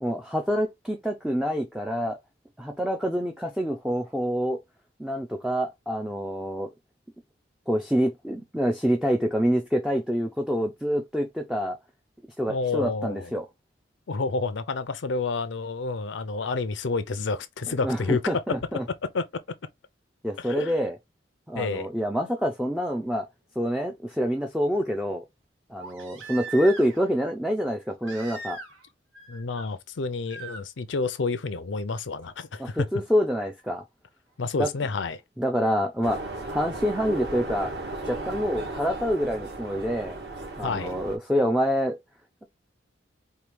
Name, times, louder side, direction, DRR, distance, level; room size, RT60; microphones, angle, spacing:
voice 1, 0.0-2.2 2.6-4.6 5.0-6.7 7.7-11.8 12.4-13.5 17.7-18.9 20.2-21.0 21.5-23.3 23.6-25.2 25.7-28.6 32.6-33.8 34.6-34.7 35.4-36.2 36.5-37.7 38.1-40.2 40.6-42.0, equal, 5° right, 0.4 m, -26 dB
voice 2, 12.5-13.3 14.1-18.2 19.1-19.2 20.4-20.8 21.5-21.9 29.3-32.8 34.4-35.2 40.6-40.9, left 4 dB, 75° left, 0.5 m, -29 dB
Crying sobbing, 23.1-23.2 25.8-27.1 28.0-28.9 29.1-29.7 30.3-30.6 32.2-32.3, right 3 dB, 80° right, 1.1 m, -40 dB
sound 1, 36.0-41.2, right 2 dB, 55° right, 1.4 m, -35 dB
4.5 x 2.3 x 3.4 m
head